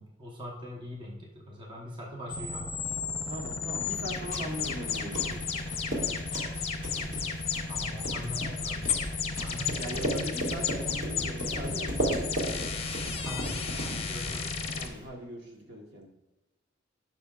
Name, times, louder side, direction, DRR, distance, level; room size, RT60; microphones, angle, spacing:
voice 1, 0.0-2.7 7.7-8.9 9.2-10.1 13.2-14.7, left 1 dB, 25° right, -2 dB, 1.0 m, -42 dB
sound 1, 2.3-14.9, left 5 dB, 30° left, 0.7 m, -33 dB
voice 2, 3.3-5.4 9.8-12.5 14.7-16.1, equal, 60° right, 0 dB, 1.4 m, -40 dB
sound 2, 4.0-15.0, right 1 dB, 40° right, 2.0 m, -36 dB
11.5 x 6.1 x 2.4 m, 1.1 s
head